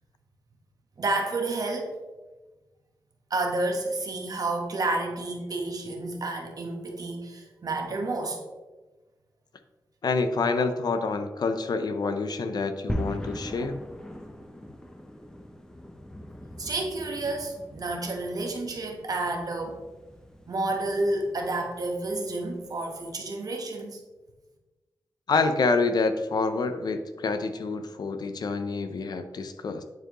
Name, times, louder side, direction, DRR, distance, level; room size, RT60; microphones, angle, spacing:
voice 1, 1.0-1.9 3.3-8.4 16.6-19.8 20.5-24.0, right 2 dB, 55° right, 2 dB, 1.1 m, -30 dB
voice 2, 10.0-13.8 25.3-29.8, left 4 dB, 65° left, 9 dB, 0.6 m, -27 dB
sound 1, 12.9-23.2, equal, 10° left, 0.6 m, -41 dB
9.2 x 4.5 x 3.0 m, 1.2 s
wide cardioid pair, 105°, 8 cm